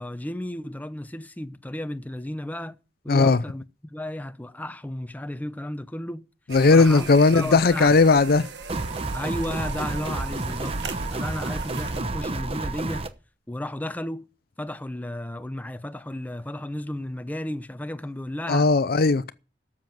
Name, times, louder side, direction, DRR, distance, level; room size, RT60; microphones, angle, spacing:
voice 1, 0.0-2.8 3.0-6.2 6.7-7.1 7.3-7.9 9.1-10.8 11.1-13.1 13.5-14.3 14.6-18.7, left 1 dB, 10° left, 0.7 m, -33 dB
voice 2, 3.1-3.4 6.5-8.5 18.5-19.3, left 3 dB, 60° left, 0.5 m, -17 dB
sound 1, 6.5-12.0, right 4 dB, 85° right, 1.5 m, -39 dB
sound 2, 8.7-13.1, right 2 dB, 35° right, 0.9 m, -30 dB
12.5 x 7.5 x 7.5 m
head